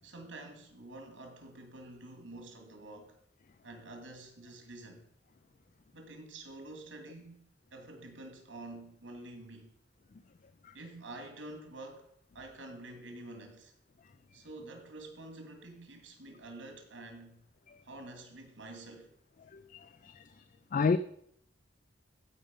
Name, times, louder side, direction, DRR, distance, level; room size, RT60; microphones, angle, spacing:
voice 1, 0.0-3.2 3.6-5.1 5.9-9.7 10.7-12.1 12.3-13.7 14.3-17.4 17.8-19.1, right 2 dB, 90° right, 2.5 m, -48 dB
voice 2, 19.5-20.2 20.7-21.0, left 5 dB, 45° left, 0.4 m, -30 dB
15.0 x 5.3 x 5.4 m
head